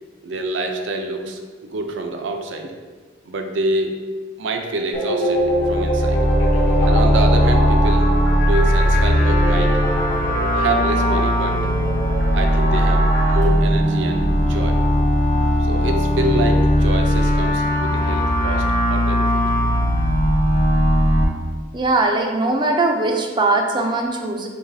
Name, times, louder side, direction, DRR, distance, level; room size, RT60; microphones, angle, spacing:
voice 1, 0.2-2.7 3.2-3.9 4.4-6.2 6.8-8.1 8.4-9.7 10.5-11.6 12.3-14.8 15.6-19.4, right 2 dB, 75° right, 4 dB, 0.5 m, -26 dB
sound 1, 4.9-13.4, equal, 80° left, 1.1 m, -25 dB
sound 2, 5.4-21.2, equal, 40° left, 0.4 m, -18 dB
voice 2, 21.7-24.5, right 2 dB, 25° right, 2 dB, 0.4 m, -20 dB
6.8 x 2.3 x 2.6 m, 1.5 s
head